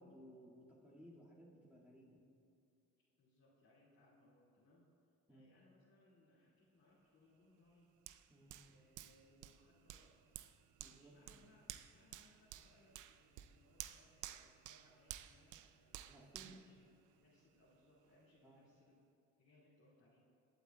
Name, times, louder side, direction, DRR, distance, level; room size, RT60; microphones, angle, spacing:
voice 1, 0.0-2.2 5.3-5.5 8.3-8.6 10.8-11.5 16.1-16.6 18.4-18.6, equal, 5° right, -7 dB, 2.0 m, -60 dB
voice 2, 3.2-4.9 5.3-7.9 8.6-10.2 10.9-16.8 17.2-18.9 19.4-20.3, left 1 dB, 60° left, -9 dB, 2.3 m, -70 dB
Hands, 8.1-17.6 18.0-18.2, right 13 dB, 80° right, 0.5 m, -54 dB
19.5 x 8.0 x 2.3 m, 2.5 s
cardioid pair, 90°, 30 cm